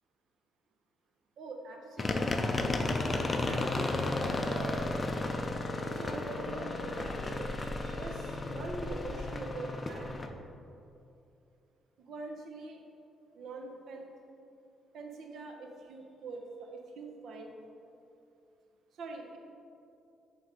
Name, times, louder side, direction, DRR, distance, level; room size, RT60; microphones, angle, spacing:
voice 1, 1.4-2.6 3.4-4.9 5.8-10.2 12.1-12.8 13.3-14.1 14.9-17.5 19.0-19.4, right 3 dB, 70° right, 3 dB, 0.7 m, -43 dB
sound 1, 2.0-10.3, left 2 dB, 30° left, 0.5 m, -33 dB
6.4 x 3.4 x 4.9 m, 2.6 s
cardioid pair, 90°, 0 cm